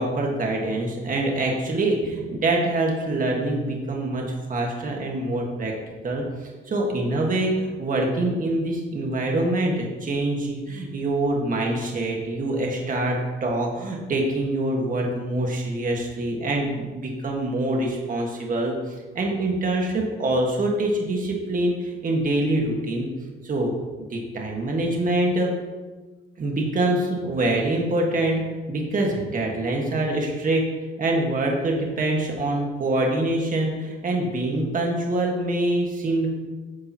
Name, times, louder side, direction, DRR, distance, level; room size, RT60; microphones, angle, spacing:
voice 1, 0.0-4.2 4.5-5.7 6.0-23.1 23.4-23.7 24.1-25.5 26.4-28.4 28.7-30.6 31.0-36.3, right 2 dB, 45° right, 0 dB, 1.6 m, -25 dB
9.6 x 6.9 x 3.0 m, 1.3 s
cardioid pair, 90°, 20 cm